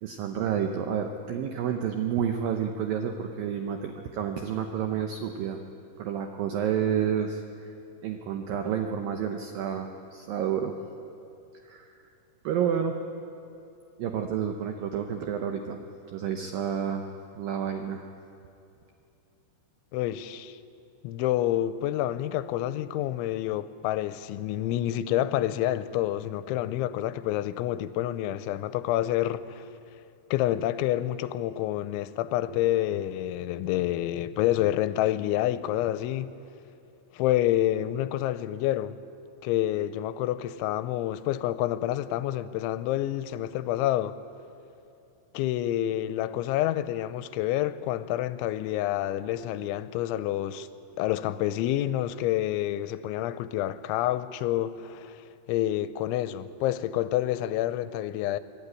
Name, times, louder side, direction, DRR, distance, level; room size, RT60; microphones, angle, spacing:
voice 1, 0.0-5.6 6.0-7.7 8.0-10.7 11.6-11.9 12.4-12.9 14.0-15.8 16.1-18.1, right 8 dB, 85° right, 2.0 m, -30 dB
voice 2, 19.9-20.6 21.0-29.7 30.3-36.3 37.1-39.0 39.4-44.2 45.3-50.7 51.0-58.4, left 13 dB, 90° left, 3.0 m, -28 dB
24.5 x 12.0 x 9.8 m
omnidirectional pair, 5.3 m